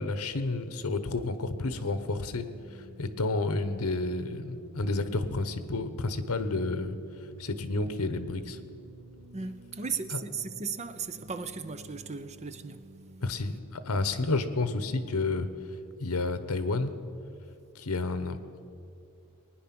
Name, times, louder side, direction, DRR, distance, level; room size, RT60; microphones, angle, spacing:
voice 1, 0.0-7.0 7.4-8.6 10.1-10.2 13.2-15.5 16.0-16.9 17.7-18.6, left 3 dB, 75° left, 1.0 m, -30 dB
sound 1, 1.5-13.6, right 2 dB, 65° right, 0.8 m, -51 dB
voice 2, 9.3-12.9, right 5 dB, 30° right, 0.6 m, -36 dB
20.5 x 10.0 x 6.0 m
head